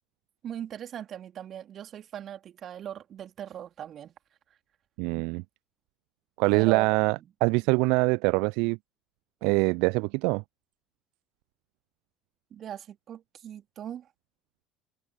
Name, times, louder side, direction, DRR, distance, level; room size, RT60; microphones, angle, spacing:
voice 1, 0.4-4.1 6.5-6.9 7.1-7.3 12.5-14.1, right 10 dB, 45° right, 3.4 m, -39 dB
voice 2, 5.0-5.4 6.4-8.8 9.4-10.4, right 30 dB, 65° right, 0.3 m, -24 dB
figure-of-eight pair, 60°, 0 cm